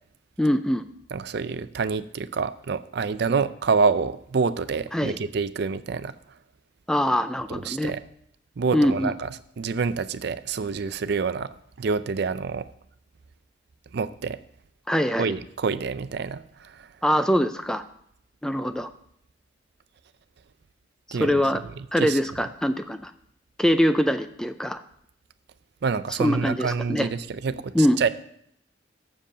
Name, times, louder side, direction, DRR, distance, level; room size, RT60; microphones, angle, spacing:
voice 1, 0.4-0.9 4.9-5.2 6.9-7.9 8.7-9.1 14.9-15.3 17.0-17.8 18.4-18.9 21.1-21.6 21.9-23.1 23.6-24.8 26.2-27.1 27.7-28.0, equal, 5° left, 9 dB, 0.4 m, -23 dB
voice 2, 1.1-6.4 7.5-8.0 8.6-9.3 9.6-12.7 13.9-14.4 15.2-16.9 21.1-21.4 22.0-22.2 25.8-28.1, right 5 dB, 60° right, 13 dB, 0.4 m, -27 dB
7.5 x 7.1 x 6.5 m, 0.70 s
head